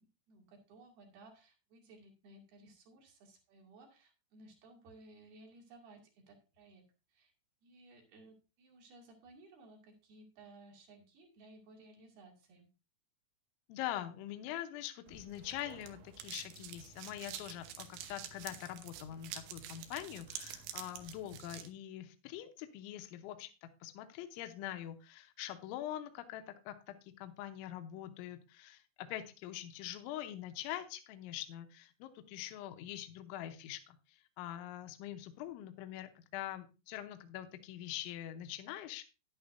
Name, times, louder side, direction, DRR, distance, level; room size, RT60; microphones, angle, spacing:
voice 1, 0.0-7.3 7.6-12.7, right 2 dB, 55° right, 1 dB, 3.7 m, -59 dB
voice 2, 13.7-23.5 23.8-39.0, left 12 dB, 80° left, 7 dB, 3.1 m, -44 dB
sound 1, 15.1-21.7, right 9 dB, 75° right, 3.2 m, -48 dB
11.5 x 11.0 x 2.6 m, 0.29 s
omnidirectional pair, 5.7 m